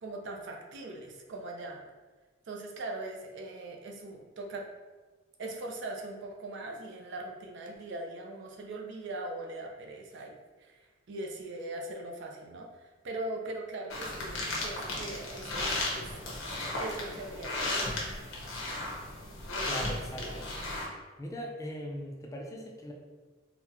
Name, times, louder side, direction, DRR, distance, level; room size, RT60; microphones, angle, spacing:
voice 1, 0.0-1.8 2.5-4.7 5.4-16.1 16.8-18.0, right 2 dB, 65° right, 1 dB, 0.5 m, -41 dB
sound 1, 13.9-20.9, left 2 dB, 85° left, 0.8 m, -35 dB
voice 2, 19.7-20.5 21.2-22.9, equal, 15° left, 0 dB, 0.4 m, -40 dB
4.1 x 2.1 x 2.8 m, 1.3 s
head